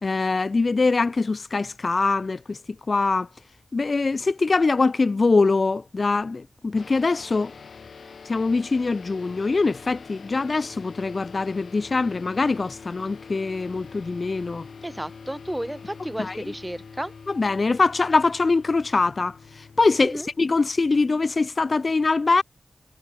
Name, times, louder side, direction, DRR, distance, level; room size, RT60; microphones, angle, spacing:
voice 1, 0.0-2.6 2.9-3.3 3.7-7.5 8.2-14.6 16.2-16.4 17.3-22.4, left 3 dB, 45° left, 0.4 m, -23 dB
sound 1, 6.8-21.6, left 5 dB, 70° left, 1.6 m, -45 dB
voice 2, 14.8-17.1 20.0-20.3, right 1 dB, 10° right, 0.8 m, -32 dB
wide cardioid pair, 100°, 0 cm